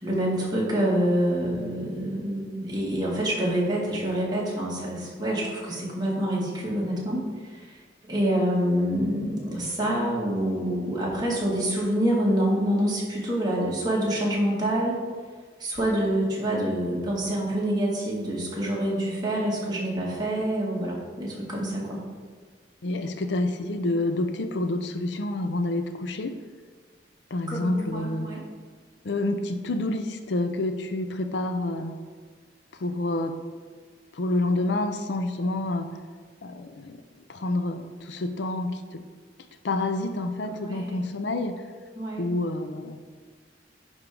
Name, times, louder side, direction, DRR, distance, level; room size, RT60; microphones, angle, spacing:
voice 1, 0.0-7.2 7.5-7.6 8.1-15.0 15.6-22.0 27.5-28.4 40.4-41.1 42.0-42.2, right 1 dB, 20° right, -5 dB, 2.1 m, -26 dB
voice 2, 22.8-26.3 27.3-28.3 29.0-32.0 32.8-33.4 34.1-35.9 36.4-37.0 37.3-39.0 39.6-41.5 42.2-43.0, left 2 dB, 65° left, 8 dB, 0.5 m, -28 dB
10.5 x 3.6 x 5.2 m, 1.5 s
head